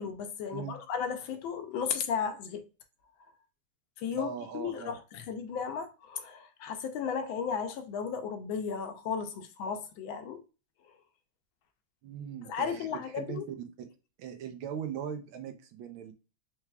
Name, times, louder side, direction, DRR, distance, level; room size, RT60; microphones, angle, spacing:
voice 1, 0.0-2.6 4.0-10.4 12.5-13.4, left 6 dB, 75° left, 1.3 m, -35 dB
voice 2, 4.1-5.0 12.0-12.9 13.1-13.9 14.2-16.1, right 8 dB, 75° right, 1.4 m, -40 dB
4.6 x 3.3 x 2.2 m
omnidirectional pair, 2.3 m